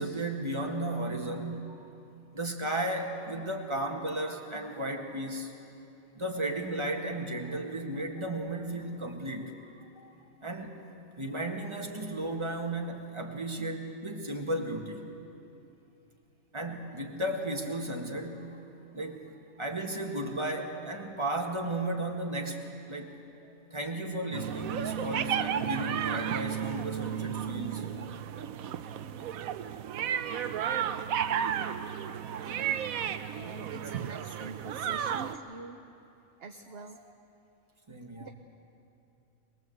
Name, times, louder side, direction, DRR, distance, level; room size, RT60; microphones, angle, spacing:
voice 1, 0.0-1.9 2.3-5.5 6.2-9.5 10.0-10.1 10.4-10.8 11.2-15.0 16.5-18.5 18.9-23.2 23.4-28.0 31.9-32.0 32.9-33.2 37.9-38.3, right 1 dB, 20° right, 1 dB, 1.9 m, -35 dB
sound 1, 24.3-35.3, right 9 dB, 80° right, 1.2 m, -33 dB
voice 2, 32.4-32.8 33.3-35.9 36.4-37.0 38.2-38.3, right 3 dB, 50° right, 5 dB, 1.0 m, -45 dB
23.0 x 21.0 x 8.1 m, 2.7 s
omnidirectional pair, 1.4 m